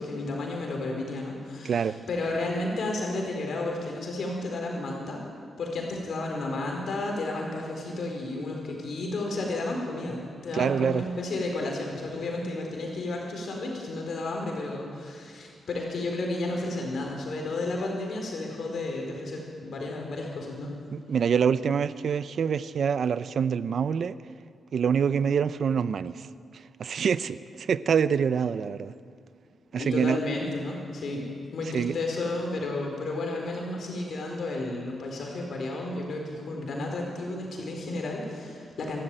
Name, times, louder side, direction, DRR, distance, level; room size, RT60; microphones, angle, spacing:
voice 1, 0.0-5.2 5.6-20.7 29.8-31.3 31.5-39.0, left 2 dB, 65° left, 4.4 m, -32 dB
voice 2, 1.6-2.0 10.6-11.0 20.9-24.2 24.7-26.3 26.8-28.9 29.7-30.2 31.7-31.9, right 7 dB, 65° right, 0.7 m, -25 dB
27.0 x 12.5 x 9.0 m
cardioid pair, 95°, 0 cm